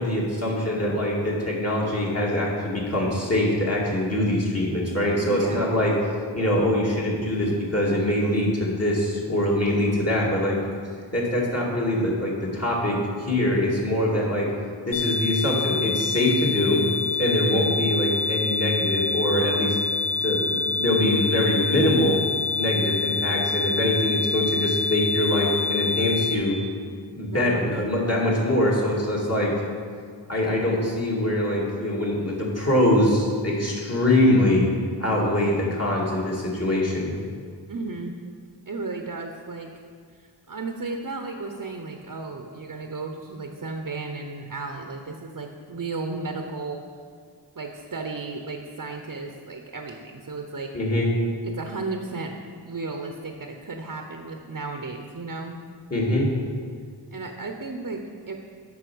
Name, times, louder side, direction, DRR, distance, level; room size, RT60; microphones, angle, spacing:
voice 1, 0.0-5.9 6.3-10.6 11.1-14.5 14.9-16.8 17.2-19.8 20.2-22.2 22.6-26.6 27.1-29.5 30.3-34.7 35.0-37.1 50.7-51.1 55.9-56.3, left 1 dB, 35° left, -4 dB, 2.4 m, -23 dB
voice 2, 5.3-5.6 7.4-7.6 17.4-17.7 27.3-27.7 37.7-38.1 38.7-39.7 40.5-46.8 47.6-50.7 51.4-52.4 52.7-55.5 57.1-58.4, right 3 dB, 45° right, 4 dB, 0.8 m, -34 dB
sound 1, 14.9-26.4, left 4 dB, 50° left, 1.0 m, -26 dB
8.2 x 5.7 x 6.2 m, 2.1 s
cardioid pair, 45°, 43 cm